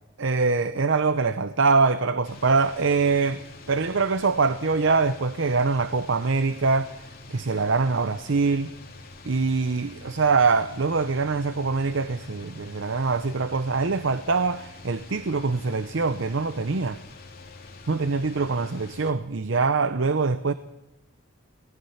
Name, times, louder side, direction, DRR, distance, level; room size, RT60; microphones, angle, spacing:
voice 1, 0.2-3.4 3.7-7.0 7.3-8.7 9.3-17.0 17.9-20.5, right 4 dB, 65° right, 0.7 m, -24 dB
sound 1, 2.2-19.1, left 3 dB, 50° left, 3.0 m, -46 dB
25.5 x 19.0 x 5.8 m
head